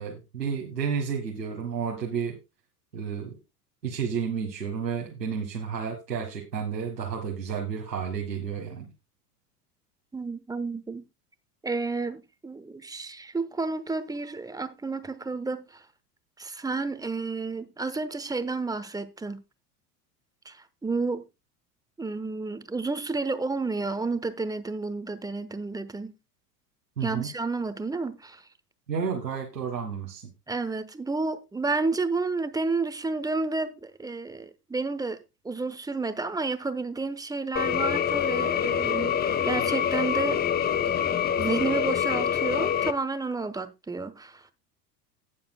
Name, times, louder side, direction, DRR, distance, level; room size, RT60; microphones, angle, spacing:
voice 1, 0.0-2.4 2.9-3.3 3.8-8.9 27.0-27.3 28.9-30.3, right 6 dB, 85° right, 1.6 m, -31 dB
voice 2, 10.1-11.0 11.6-15.8 16.4-19.4 20.4-21.2 22.0-26.1 27.0-28.4 30.5-35.2 35.4-40.4 40.8-41.1 41.4-44.5, right 3 dB, 10° right, 0.9 m, -31 dB
sound 1, 37.6-42.9, left 8 dB, 20° left, 0.6 m, -26 dB
18.0 x 7.1 x 2.2 m
figure-of-eight pair, 80°, 47 cm